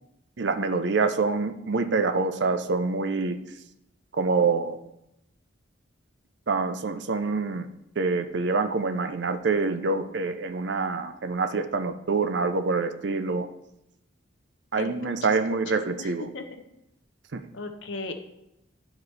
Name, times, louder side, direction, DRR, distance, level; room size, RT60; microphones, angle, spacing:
voice 1, 0.4-3.4 4.1-4.8 6.5-7.7 8.0-13.5 14.7-16.3 17.3-17.4, right 4 dB, 60° right, 9 dB, 0.5 m, -26 dB
voice 2, 14.8-15.6 16.0-16.4 17.5-18.1, left 3 dB, 70° left, 6 dB, 0.9 m, -37 dB
11.0 x 4.8 x 3.2 m, 0.84 s
head